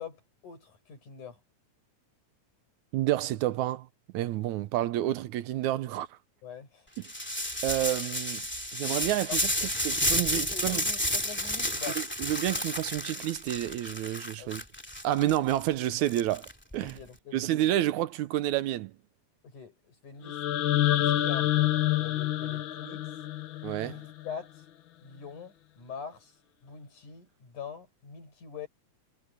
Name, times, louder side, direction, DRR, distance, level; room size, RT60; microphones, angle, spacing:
voice 1, 0.0-1.4 6.4-6.9 9.3-9.8 10.3-12.0 14.4-14.7 16.8-17.5 19.4-21.7 22.0-23.1 24.2-24.6 25.0-26.4 26.6-28.7, left 6 dB, 85° left, 7.2 m, -44 dB
voice 2, 2.9-3.9 4.1-6.1 7.6-8.4 8.7-9.5 9.8-10.8 12.2-14.6 15.0-17.0 17.3-18.9 23.6-24.0, right 14 dB, 80° right, 2.2 m, -29 dB
sound 1, 7.0-16.9, left 1 dB, 5° left, 2.1 m, -31 dB
sound 2, 20.2-24.3, left 14 dB, 70° left, 1.2 m, -27 dB
omnidirectional pair, 3.4 m